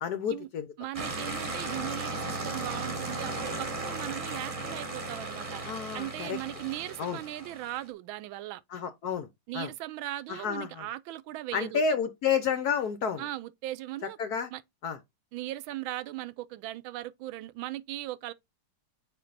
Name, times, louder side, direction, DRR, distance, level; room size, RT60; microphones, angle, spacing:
voice 1, 0.0-0.7 5.6-6.4 7.0-7.2 8.7-9.3 9.5-9.7 10.3-10.8 11.5-13.2 14.2-14.5 14.8-15.0, left 6 dB, 65° left, 1.0 m, -30 dB
voice 2, 0.8-5.6 5.9-8.6 9.5-11.8 13.2-14.2 14.5-14.6 15.3-18.3, right 15 dB, 80° right, 1.3 m, -38 dB
sound 1, 0.9-7.8, right 2 dB, 25° right, 0.7 m, -36 dB
6.5 x 4.4 x 3.9 m
omnidirectional pair, 2.2 m